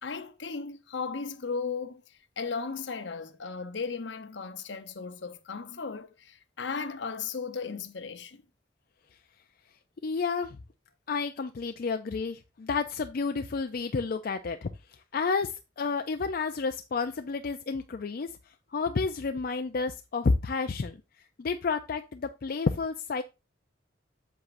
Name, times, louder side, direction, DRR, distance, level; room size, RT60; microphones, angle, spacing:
voice 1, 0.0-2.0 2.4-8.4, left 5 dB, 75° left, 0.9 m, -36 dB
voice 2, 10.0-10.6 11.1-14.7 15.1-18.3 18.7-21.0 21.4-23.2, left 4 dB, 55° left, 0.4 m, -30 dB
7.9 x 7.1 x 2.6 m
head